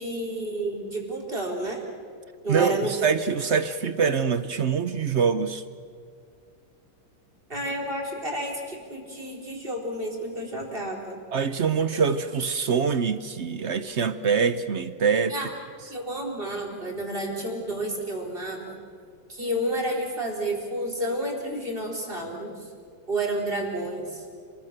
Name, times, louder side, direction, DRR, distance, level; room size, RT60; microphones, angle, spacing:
voice 1, 0.0-1.9 2.4-2.9 7.5-11.2 15.3-15.5 15.9-18.8 19.3-22.7 23.1-24.3, right 1 dB, 25° right, 4.4 m, -30 dB
voice 2, 2.5-5.6 11.3-15.3, right 6 dB, 65° right, 0.6 m, -24 dB
29.0 x 21.0 x 6.7 m
omnidirectional pair, 2.3 m